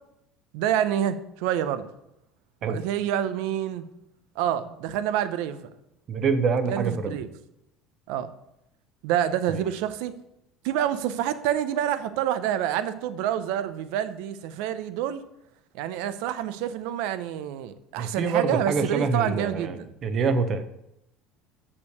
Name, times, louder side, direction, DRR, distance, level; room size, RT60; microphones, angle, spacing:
voice 1, 0.5-1.9 2.6-3.9 4.4-5.7 6.7-7.3 8.1-8.3 9.0-10.1 10.6-15.2 15.7-19.9, right 10 dB, 80° right, 0.6 m, -27 dB
voice 2, 6.1-7.2 9.5-9.6 18.0-20.7, right 5 dB, 40° right, 0.8 m, -26 dB
6.5 x 5.8 x 6.6 m
supercardioid pair, 120°, 0 cm